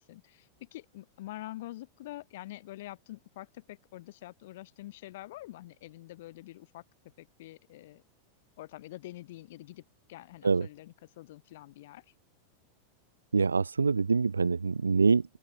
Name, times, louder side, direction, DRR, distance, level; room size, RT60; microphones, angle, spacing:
voice 1, 0.0-6.8 7.2-8.0 8.6-9.8 10.1-12.0, left 16 dB, 55° left, 7.6 m, -46 dB
voice 2, 13.3-15.4, right 4 dB, 75° right, 3.1 m, -25 dB
figure-of-eight pair, 90°, 0 cm